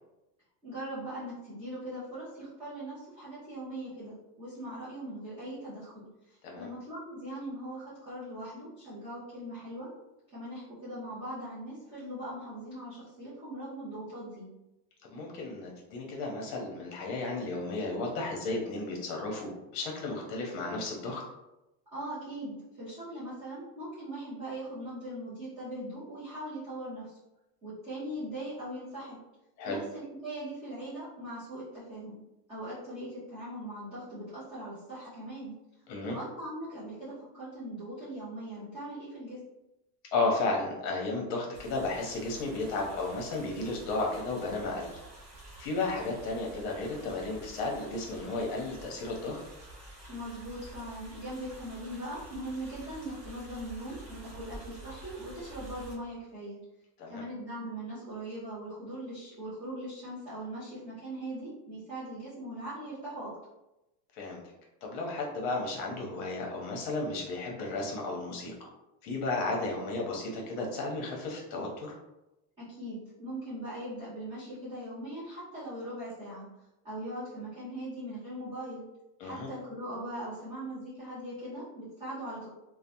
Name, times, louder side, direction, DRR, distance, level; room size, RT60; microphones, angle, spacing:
voice 1, 0.6-9.9 10.3-14.5 21.9-27.1 27.6-29.2 29.6-32.2 32.5-35.5 36.0-39.4 50.1-56.6 57.1-63.3 72.6-76.5 76.8-78.8 79.2-82.5, right 1 dB, 15° right, -13 dB, 0.4 m, -40 dB
voice 2, 15.1-21.2 29.6-29.8 35.9-36.2 40.1-45.0 45.6-49.4 57.0-57.2 64.1-64.4 64.8-68.7 69.0-71.9 79.2-79.5, left 3 dB, 50° left, 0 dB, 0.7 m, -33 dB
sound 1, 41.5-55.9, right 2 dB, 30° right, 1.1 m, -49 dB
2.9 x 2.0 x 2.6 m, 0.95 s
cardioid pair, 170°, 49 cm